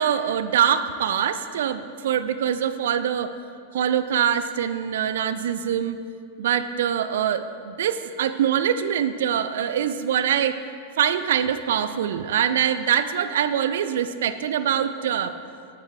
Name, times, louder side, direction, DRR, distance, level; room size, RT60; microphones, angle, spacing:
voice 1, 0.0-3.3 3.7-6.0 6.4-10.6 11.0-15.3, right 9 dB, 60° right, 12 dB, 0.4 m, -24 dB
8.9 x 7.1 x 3.7 m, 2.2 s
figure-of-eight pair, 90°, 0 cm